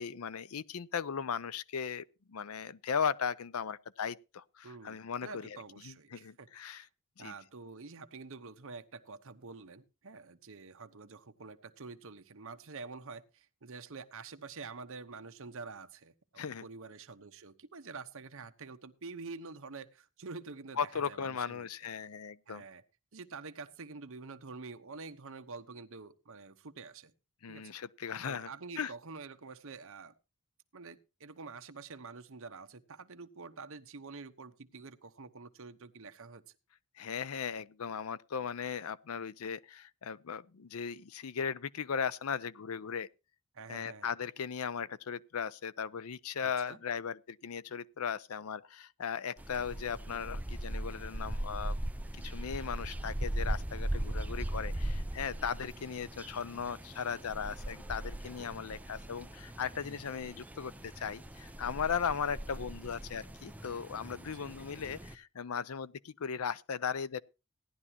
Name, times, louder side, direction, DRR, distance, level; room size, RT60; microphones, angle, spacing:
voice 1, 0.0-5.6 5.8-6.9 7.2-7.3 16.4-16.7 20.8-22.6 27.4-28.5 28.8-28.9 37.0-43.1 43.7-51.8 52.2-67.2, left 6 dB, 75° left, 0.6 m, -37 dB
voice 2, 4.6-6.9 7.2-21.7 22.5-22.8 23.1-27.1 27.5-27.8 28.3-30.1 30.7-36.4 43.5-44.1 46.4-46.8 53.9-54.2 64.3-64.5, right 4 dB, 70° right, 1.0 m, -47 dB
sound 1, 49.4-65.1, right 1 dB, 5° right, 0.6 m, -39 dB
17.0 x 11.0 x 2.9 m
head